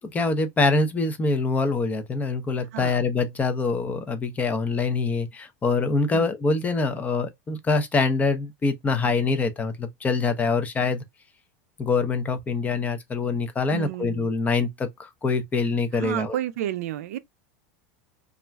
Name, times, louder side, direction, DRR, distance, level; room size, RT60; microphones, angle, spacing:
voice 1, 0.0-11.0 11.8-16.4, left 3 dB, 20° left, 0.5 m, -25 dB
voice 2, 13.7-14.3 15.9-17.2, right 12 dB, 85° right, 0.4 m, -31 dB
2.4 x 2.1 x 3.3 m
supercardioid pair, 130°, 8 cm